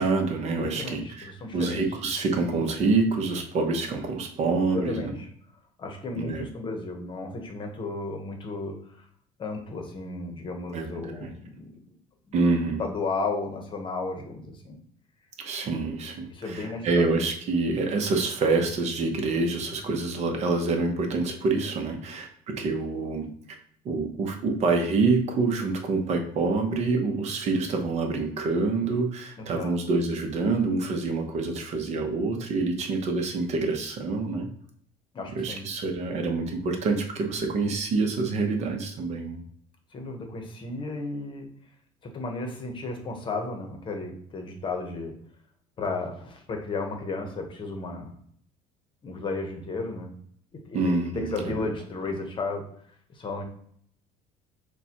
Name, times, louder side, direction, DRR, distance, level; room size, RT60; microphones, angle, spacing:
voice 1, 0.0-5.1 6.2-6.4 10.7-11.3 12.3-12.8 15.4-23.3 23.8-34.5 35.4-39.4 50.7-51.5, right 3 dB, 45° right, 4 dB, 0.8 m, -26 dB
voice 2, 0.6-1.9 4.7-5.3 5.8-9.1 9.4-11.8 12.8-14.8 16.3-17.1 29.4-29.7 35.1-35.6 39.9-41.5 42.0-45.1 45.8-48.1 49.0-50.1 50.7-50.8 51.1-52.6 53.1-53.4, left 3 dB, 35° left, 4 dB, 0.9 m, -33 dB
6.6 x 2.3 x 2.9 m, 0.63 s
cardioid pair, 125°, 15 cm